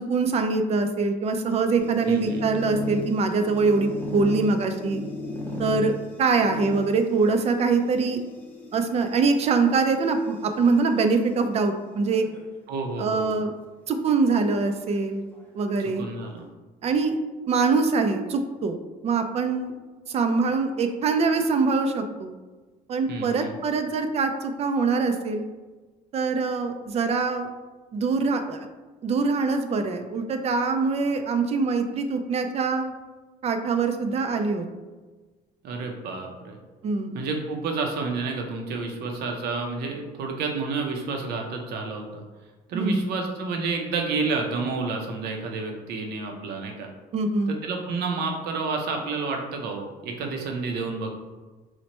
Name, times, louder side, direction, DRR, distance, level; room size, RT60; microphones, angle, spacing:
voice 1, 0.0-5.0 5.6-5.9 6.2-8.2 8.7-12.2 13.0-13.5 13.9-15.2 15.5-16.0 16.8-17.2 17.5-18.8 19.0-19.7 20.1-22.3 22.9-25.4 26.1-27.5 27.9-28.7 29.0-32.9 33.4-34.7 36.8-37.2 42.7-43.0 47.1-47.5, right 4 dB, 40° right, 6 dB, 0.4 m, -23 dB
sound 1, 1.8-11.2 12.0-12.5 12.9-13.0 13.3-13.4 14.3-15.4, left 1 dB, 10° left, 0.7 m, -37 dB
voice 2, 2.1-2.4 12.7-13.4 15.8-16.5 23.1-23.5 35.6-36.6 37.1-42.2 42.7-46.9 47.5-51.1, right 4 dB, 75° right, 2 dB, 0.6 m, -30 dB
4.2 x 2.1 x 2.9 m, 1.3 s
cardioid pair, 110°, 17 cm